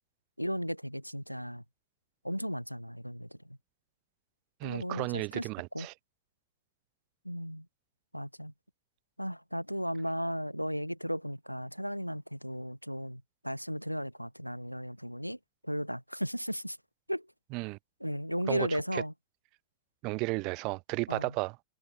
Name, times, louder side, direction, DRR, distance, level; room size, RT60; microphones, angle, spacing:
voice 1, 0.4-1.6 2.2-3.6 4.6-5.5 5.7-5.9 7.2-7.7 8.1-8.5 9.2-15.4 15.6-16.8 17.1-17.3 18.0-19.1 21.1-21.3, equal, 90° right, 5.6 m, -35 dB
voice 2, 4.6-5.9 17.5-17.8 18.5-19.0 20.0-21.6, right 27 dB, 40° right, 3.6 m, -34 dB
figure-of-eight pair, 90°, 0 cm